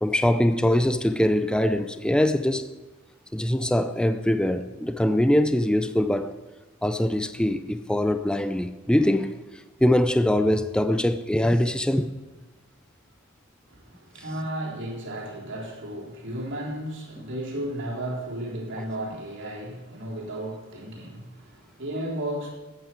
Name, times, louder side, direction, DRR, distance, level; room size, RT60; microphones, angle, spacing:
voice 1, 0.0-2.7 3.3-6.4 6.8-9.3 9.8-12.1, left 1 dB, 5° left, 0.4 m, -23 dB
voice 2, 13.7-22.5, right 1 dB, 60° right, 3.6 m, -34 dB
12.5 x 8.9 x 7.5 m
head